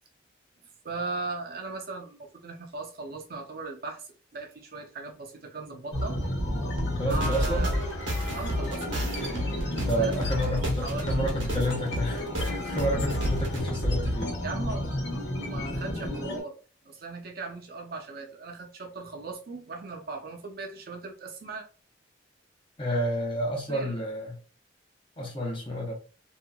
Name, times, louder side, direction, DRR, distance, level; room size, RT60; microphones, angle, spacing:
voice 1, 0.8-6.2 7.0-7.8 8.3-9.0 10.0-11.2 12.3-12.4 14.4-14.9 15.5-21.6 23.7-23.9, right 3 dB, 50° right, 0.6 m, -38 dB
sound 1, 5.9-16.4, equal, 65° left, 1.1 m, -31 dB
sound 2, 6.8-13.6, left 1 dB, 90° right, 0.9 m, -32 dB
voice 2, 6.9-7.7 9.8-14.3 22.8-24.4 25.2-25.9, equal, 30° left, 0.8 m, -30 dB
2.8 x 2.4 x 2.2 m
head